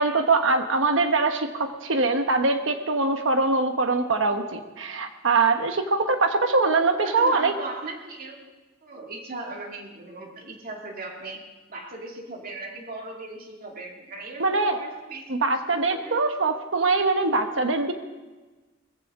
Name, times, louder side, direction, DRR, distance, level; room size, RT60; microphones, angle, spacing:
voice 1, 0.0-7.5 14.4-14.8 15.3-17.9, right 3 dB, 75° right, 6 dB, 1.2 m, -23 dB
voice 2, 7.0-8.5 8.8-11.4 11.7-15.4 15.7-16.5, right 2 dB, 50° right, 1 dB, 2.4 m, -38 dB
21.0 x 15.0 x 3.7 m, 1.2 s
head